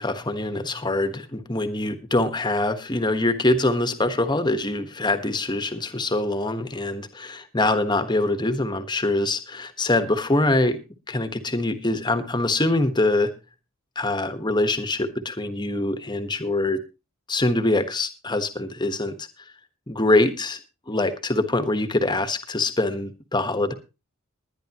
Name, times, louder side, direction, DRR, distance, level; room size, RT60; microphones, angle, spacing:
voice 1, 0.0-10.8 11.1-13.3 13.9-16.8 17.3-19.3 19.9-20.6 20.9-23.7, left 2 dB, 20° left, 10 dB, 1.4 m, -24 dB
21.0 x 10.5 x 3.0 m, 0.29 s
head